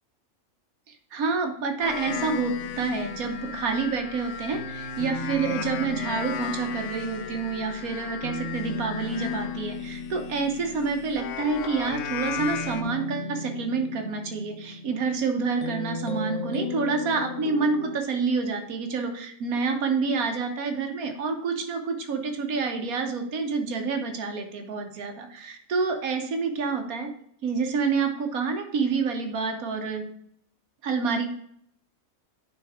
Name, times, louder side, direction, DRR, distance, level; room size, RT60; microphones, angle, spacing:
voice 1, 0.9-27.1 27.4-30.0 30.8-31.3, right 4 dB, 90° right, 5 dB, 1.5 m, -28 dB
sound 1, 1.8-12.8, left 10 dB, 70° left, 0.9 m, -36 dB
sound 2, 2.0-18.0, left 3 dB, 35° left, 0.7 m, -37 dB
8.7 x 5.3 x 3.6 m, 0.67 s
omnidirectional pair, 1.5 m